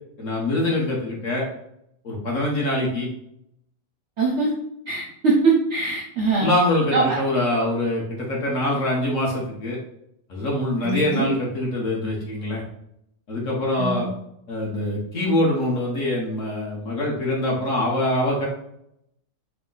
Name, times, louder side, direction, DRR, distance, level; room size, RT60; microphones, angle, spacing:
voice 1, 0.2-1.5 2.0-3.1 6.4-9.8 10.3-12.6 13.3-14.1 14.5-18.5, left 1 dB, 50° left, -3 dB, 1.3 m, -24 dB
voice 2, 4.2-4.5 4.9-6.5 6.9-7.2 10.8-11.3 13.8-14.1, right 4 dB, 60° right, -3 dB, 0.8 m, -22 dB
4.9 x 2.1 x 3.9 m, 0.75 s
omnidirectional pair, 1.9 m